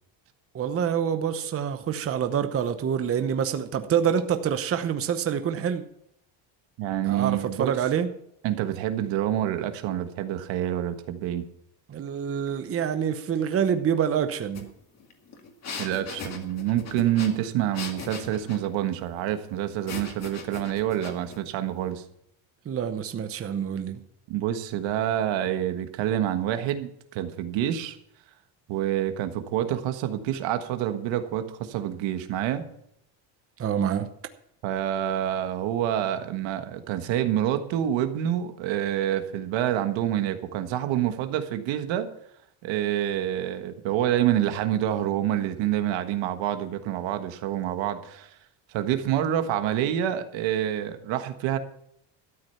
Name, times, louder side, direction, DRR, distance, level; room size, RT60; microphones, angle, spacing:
voice 1, 0.5-5.8 7.0-8.1 11.9-14.7 22.6-24.0 33.6-34.1, right 8 dB, 30° right, 0.9 m, -26 dB
voice 2, 6.8-7.7 8.4-11.4 15.8-22.0 24.3-28.0 28.7-32.6 34.6-42.1 42.6-48.3 48.7-51.6, right 11 dB, 75° right, 1.5 m, -27 dB
sound 1, 14.5-14.6 15.0-18.7 19.9-21.4, left 4 dB, 35° left, 2.2 m, -39 dB
13.0 x 8.8 x 5.7 m
cardioid pair, 125°, 46 cm